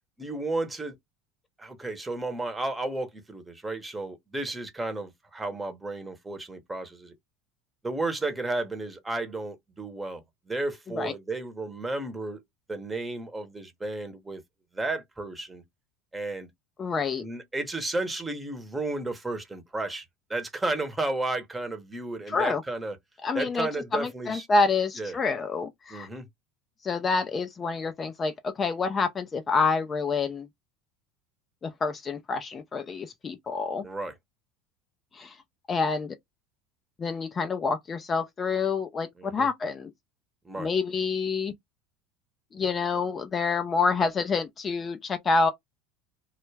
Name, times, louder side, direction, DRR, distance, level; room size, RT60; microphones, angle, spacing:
voice 1, 0.2-1.0 1.6-7.1 7.8-12.4 12.7-14.4 14.7-15.6 16.1-16.5 17.2-20.0 20.3-23.0 23.3-24.5 25.0-25.2 25.9-26.3 33.8-34.1 39.2-39.5 40.4-40.7, right 2 dB, 10° right, 0.8 m, -33 dB
voice 2, 16.8-17.2 22.3-22.6 23.2-26.1 26.8-30.5 31.6-33.8 35.1-35.4 35.7-36.1 37.0-39.9 40.6-41.5 42.5-45.5, left 4 dB, 30° left, 0.4 m, -27 dB
2.2 x 2.0 x 3.2 m
supercardioid pair, 105°, 0 cm